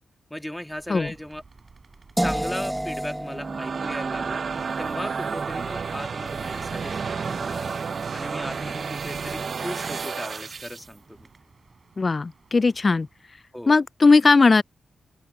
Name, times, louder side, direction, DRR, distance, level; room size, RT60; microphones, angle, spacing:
voice 1, 0.3-1.4 2.2-7.8 8.1-11.3 13.5-13.8, left 1 dB, 5° left, 2.6 m, -37 dB
sound 1, 0.6-13.6, right 4 dB, 45° right, 6.4 m, -55 dB
sound 2, 2.2-8.1, right 1 dB, 10° right, 1.2 m, -33 dB
sound 3, 3.2-10.9, right 5 dB, 60° right, 0.8 m, -31 dB
voice 2, 12.0-13.1 13.7-14.6, left 4 dB, 45° left, 0.3 m, -18 dB
open air
cardioid pair, 50°, 0 cm